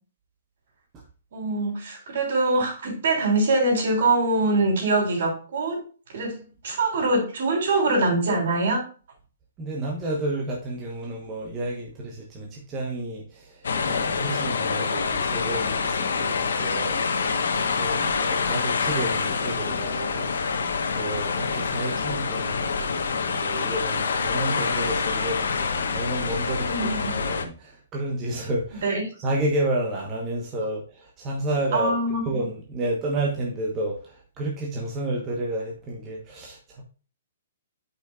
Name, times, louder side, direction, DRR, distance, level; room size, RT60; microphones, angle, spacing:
voice 1, 1.3-5.8 6.1-6.4 6.6-8.8 17.8-18.1 26.5-27.1 28.8-29.0 31.7-32.2, right 2 dB, 55° right, 3.7 m, -23 dB
voice 2, 9.6-20.6 21.0-28.9 29.2-32.0 32.2-36.8, right 1 dB, 15° right, 1.1 m, -31 dB
sound 1, 13.6-27.4, left 5 dB, 85° left, 1.2 m, -26 dB
8.7 x 5.5 x 2.4 m
hypercardioid pair, 170°, 0 cm